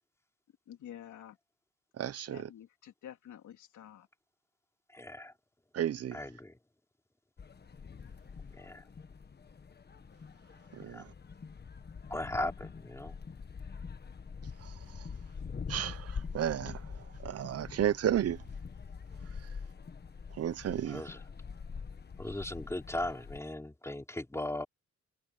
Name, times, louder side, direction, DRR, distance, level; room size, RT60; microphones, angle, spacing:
voice 1, 0.7-1.4 2.3-4.1, left 10 dB, 85° left, 3.6 m, -49 dB
voice 2, 2.0-2.5 5.7-6.2 10.7-11.1 14.6-15.1 15.7-18.4 20.3-21.1, right 10 dB, 55° right, 0.8 m, -33 dB
voice 3, 4.9-5.3 6.1-6.5 8.6-8.8 10.9-11.0 12.1-13.1 20.9-21.2 22.2-24.7, left 1 dB, 10° left, 3.3 m, -37 dB
sound 1, 7.4-23.4, left 5 dB, 35° left, 1.5 m, -45 dB
cardioid pair, 115°, 29 cm